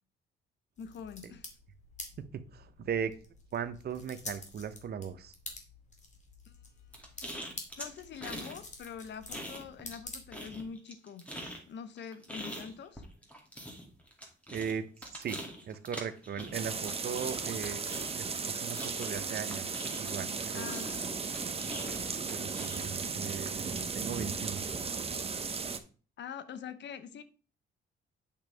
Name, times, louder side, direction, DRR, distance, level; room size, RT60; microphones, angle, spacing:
voice 1, 0.8-1.5 6.5-6.9 7.8-11.3 11.7-13.1 20.5-21.1 26.2-27.2, left 7 dB, 65° left, 1.0 m, -44 dB
sound 1, 0.8-10.7, left 3 dB, 35° left, 2.3 m, -48 dB
voice 2, 2.2-3.1 3.5-5.3 14.5-14.9 15.1-20.7 22.3-23.7 23.9-24.7, right 7 dB, 55° right, 1.0 m, -38 dB
sound 2, 6.9-8.6 8.9-10.0 10.3-20.3 20.6-23.0, equal, 5° left, 2.4 m, -44 dB
sound 3, 16.5-25.8, right 5 dB, 30° right, 1.0 m, -36 dB
8.7 x 6.1 x 3.5 m
cardioid pair, 90°, 20 cm